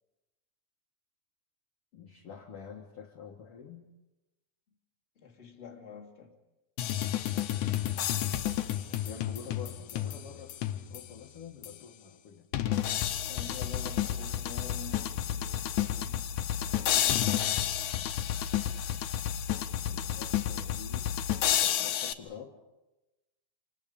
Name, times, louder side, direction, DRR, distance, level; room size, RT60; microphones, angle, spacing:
voice 1, 1.9-3.9 8.9-12.5 19.8-21.1 21.6-22.6, left 6 dB, 55° left, 1.6 m, -47 dB
voice 2, 5.1-6.4 13.3-17.3, left 7 dB, 20° left, 2.0 m, -47 dB
sound 1, 6.8-11.2 11.6-11.7 12.5-22.1, left 11 dB, 85° left, 1.7 m, -31 dB
28.5 x 28.0 x 5.2 m
omnidirectional pair, 4.9 m